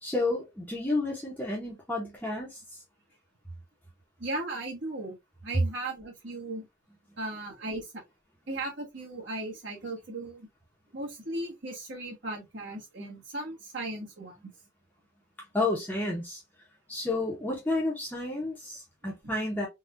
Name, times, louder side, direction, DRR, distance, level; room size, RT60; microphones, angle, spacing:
voice 1, 0.0-2.8 15.5-16.4 16.9-19.7, left 2 dB, 10° left, 0.7 m, -31 dB
voice 2, 4.2-5.2 5.4-6.7 7.2-8.0 8.5-10.5 10.9-14.4 19.2-19.3, right 2 dB, 65° right, 1.3 m, -37 dB
3.5 x 2.2 x 2.5 m
head